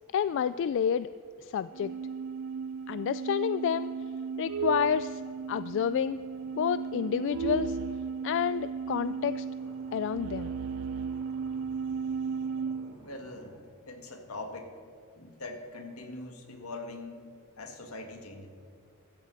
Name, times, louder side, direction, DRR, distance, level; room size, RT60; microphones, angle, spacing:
voice 1, 0.1-1.1 1.4-1.9 2.9-3.9 4.4-5.2 5.5-6.2 6.5-7.8 8.2-9.5 9.9-10.5, left 8 dB, 60° left, 14 dB, 0.3 m, -29 dB
sound 1, 1.7-12.9, right 6 dB, 70° right, 0.4 m, -35 dB
sound 2, 4.8-13.5, equal, 40° right, 2.5 m, -55 dB
voice 2, 12.9-14.7 15.2-17.3 17.6-18.5, left 2 dB, 85° left, 4 dB, 1.9 m, -42 dB
16.0 x 14.0 x 4.1 m, 2.2 s
head